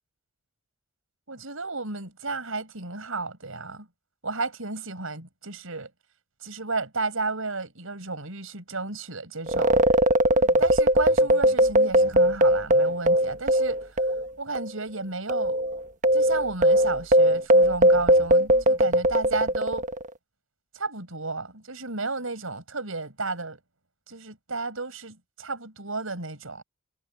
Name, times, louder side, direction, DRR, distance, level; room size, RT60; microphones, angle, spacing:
voice 1, 1.3-3.9 4.2-5.9 6.4-9.8 10.6-14.0 14.4-15.6 16.1-19.8 20.7-23.6 24.1-26.6, right 3 dB, 70° right, 6.1 m, -33 dB
sound 1, 9.5-14.3 14.5-14.7 15.3-20.1, right 1 dB, 35° right, 1.1 m, -20 dB
head